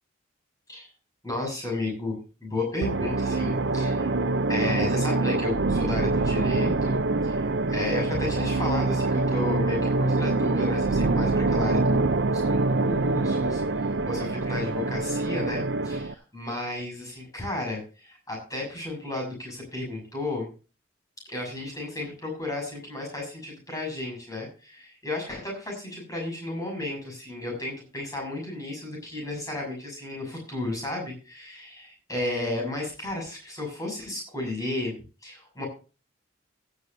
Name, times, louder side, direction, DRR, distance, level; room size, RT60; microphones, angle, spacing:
voice 1, 1.2-4.1 4.5-20.5 21.3-34.9 35.2-35.7, left 2 dB, 15° left, 0 dB, 6.6 m, -33 dB
sound 1, 2.8-16.1, right 3 dB, 60° right, 0.6 m, -25 dB
17.0 x 12.0 x 2.7 m, 0.34 s
head